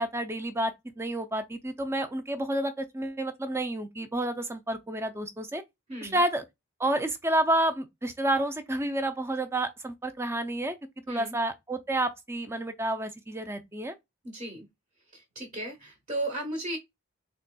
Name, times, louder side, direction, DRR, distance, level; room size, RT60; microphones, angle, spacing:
voice 1, 0.0-5.6 6.0-6.4 6.8-10.8 11.1-13.9, right 1 dB, 10° right, 0.4 m, -30 dB
voice 2, 14.2-14.7 15.1-16.8, right 1 dB, 35° right, 1.2 m, -35 dB
4.0 x 3.2 x 2.2 m
head